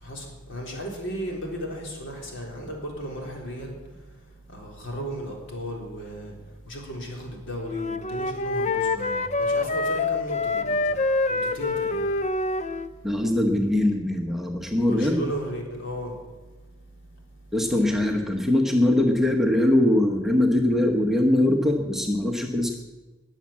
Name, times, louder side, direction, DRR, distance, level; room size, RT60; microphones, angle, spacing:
voice 1, 0.0-3.7 4.5-6.3 6.7-10.9 11.3-12.1 14.8-16.1, equal, 60° left, -1 dB, 3.9 m, -35 dB
Wind instrument woodwind instrument, 7.7-12.9, left 3 dB, 35° left, 0.5 m, -26 dB
voice 2, 13.0-15.2 17.5-22.8, left 1 dB, ahead, 1 dB, 1.1 m, -22 dB
20.5 x 7.4 x 7.3 m, 1.2 s
head